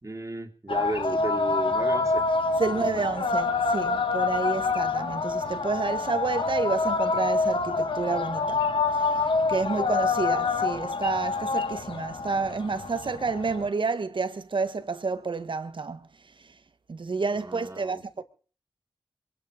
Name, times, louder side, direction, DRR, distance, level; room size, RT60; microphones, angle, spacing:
voice 1, 0.0-2.2 2.8-2.9 17.3-18.2, right 2 dB, 35° right, 3.0 m, -34 dB
sound 1, 0.7-13.7, left 4 dB, 70° left, 1.5 m, -27 dB
voice 2, 2.6-8.6 9.0-9.1 9.5-16.0 16.9-18.2, right 4 dB, 65° right, 1.7 m, -29 dB
22.5 x 10.0 x 5.2 m
cardioid pair, 45°, 9 cm